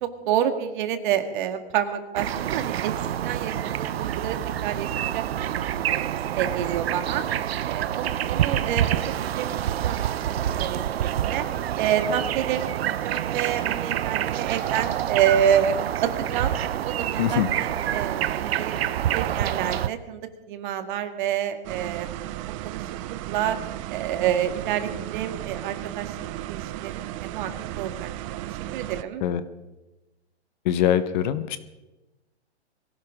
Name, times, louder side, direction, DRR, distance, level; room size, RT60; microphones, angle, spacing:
voice 1, 0.0-2.9 3.2-4.4 4.6-6.0 6.4-7.2 7.6-10.0 10.3-11.5 11.8-15.7 16.0-16.5 16.8-20.2 20.5-22.3 22.6-22.8 23.3-23.6 23.9-26.2 26.5-26.9 27.2-27.5 27.8-28.1 28.5-29.2, right 9 dB, 45° right, 8 dB, 1.9 m, -28 dB
sound 1, 2.2-19.9, right 11 dB, 60° right, 0.8 m, -27 dB
sound 2, 21.6-29.0, right 14 dB, 30° right, 0.6 m, -35 dB
voice 2, 30.6-31.6, left 10 dB, 40° left, 12 dB, 1.1 m, -23 dB
23.5 x 16.5 x 3.7 m, 1.1 s
hypercardioid pair, 130°, 34 cm